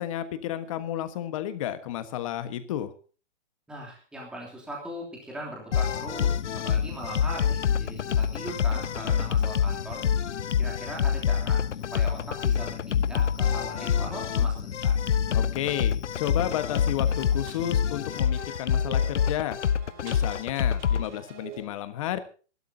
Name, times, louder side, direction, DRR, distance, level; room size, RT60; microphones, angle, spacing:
voice 1, 0.0-2.9 15.3-19.6 20.0-22.2, left 11 dB, 30° left, 11 dB, 1.4 m, -32 dB
voice 2, 3.7-6.4 6.6-10.0 10.6-11.6 11.9-15.0, right 1 dB, ahead, -2 dB, 3.0 m, -39 dB
sound 1, 5.7-21.0, left 8 dB, 75° left, 1.1 m, -26 dB
sound 2, 16.4-21.6, right 7 dB, 20° right, 2.5 m, -47 dB
25.5 x 12.5 x 2.8 m, 0.36 s
hypercardioid pair, 170°, 35 cm